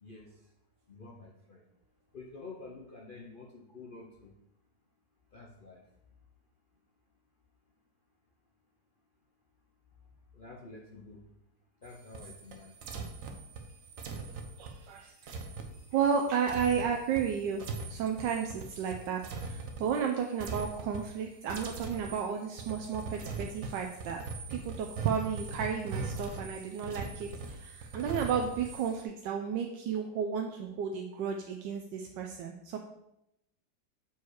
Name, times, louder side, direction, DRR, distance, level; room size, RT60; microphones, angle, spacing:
voice 1, 0.9-1.6 2.1-4.3 5.3-5.8 10.3-11.2 11.8-12.7, left 3 dB, 55° left, -1 dB, 0.5 m, -48 dB
sound 1, 11.8-20.1 20.4-21.2 21.5-29.0, right 4 dB, 55° right, 1.1 m, -41 dB
voice 2, 14.6-15.3 15.9-17.6 17.9-19.2 19.5-24.2 24.5-32.8, right 7 dB, 85° right, 3 dB, 1.3 m, -33 dB
6.8 x 4.7 x 4.7 m, 0.84 s
omnidirectional pair, 1.9 m